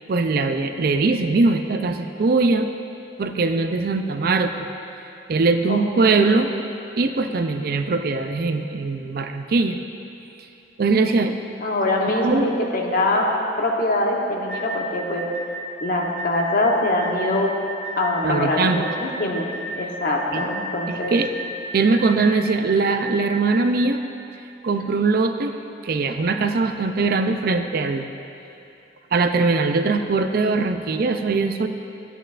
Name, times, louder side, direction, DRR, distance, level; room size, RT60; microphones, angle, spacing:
voice 1, 0.1-2.7 3.2-4.7 5.3-6.5 7.0-9.8 10.8-11.4 12.2-12.5 18.2-18.9 20.3-20.5 20.9-21.3 21.7-24.0 24.6-25.6 25.8-28.1 29.1-31.7, right 3 dB, 55° right, 7 dB, 0.4 m, -21 dB
voice 2, 5.7-6.1 11.6-13.3 13.6-15.3 15.8-17.5 18.0-19.5 19.8-21.1, left 1 dB, 55° left, -1 dB, 1.0 m, -23 dB
sound 1, 14.5-23.6, right 1 dB, 35° left, 1.3 m, -34 dB
13.5 x 8.9 x 2.5 m, 2.8 s
head